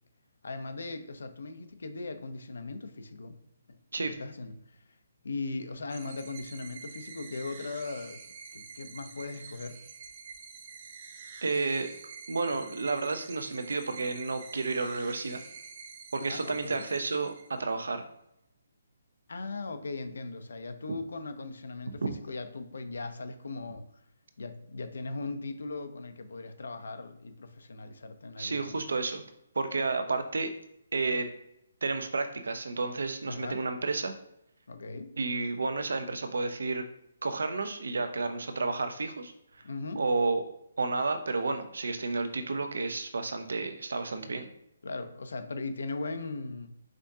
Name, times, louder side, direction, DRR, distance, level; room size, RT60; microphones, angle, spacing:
voice 1, 0.4-3.4 4.0-4.8 5.2-8.2 8.5-9.8 16.2-16.8 19.3-23.9 24.4-28.8 33.3-33.6 34.7-35.2 39.6-40.0 44.8-46.7, left 3 dB, 75° left, 0.7 m, -38 dB
sound 1, 5.9-17.8, right 5 dB, 30° right, 0.5 m, -48 dB
voice 2, 11.4-11.9 12.3-15.4 16.1-18.0 22.0-22.1 28.4-29.2 29.5-30.5 30.9-31.3 31.8-34.1 35.2-36.8 37.2-39.3 40.0-40.4 40.8-44.5, right 3 dB, 75° right, 0.7 m, -31 dB
5.0 x 3.6 x 2.7 m
hypercardioid pair, 180°, 0 cm